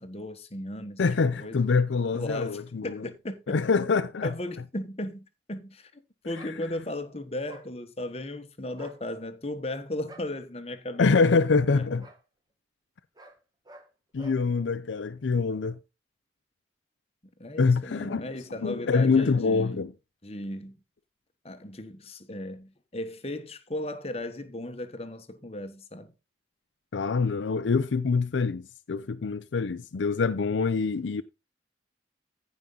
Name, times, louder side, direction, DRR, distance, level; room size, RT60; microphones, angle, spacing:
voice 1, 0.0-1.7 2.1-3.5 4.2-11.2 11.7-11.9 17.4-19.8 20.2-20.8 21.4-26.1, left 1 dB, 35° left, 1.1 m, -36 dB
voice 2, 1.0-3.0 3.5-4.3 11.0-12.1 14.1-15.8 17.6-18.3 18.6-19.9 26.9-31.2, left 4 dB, 85° left, 0.5 m, -25 dB
sound 1, 6.3-6.6 7.5-7.7 8.7-9.0 10.1-10.3 11.1-11.3 12.0-12.2 13.1-13.4 13.6-13.9 14.2-14.4, right 2 dB, 20° right, 1.3 m, -49 dB
15.0 x 5.3 x 3.8 m
head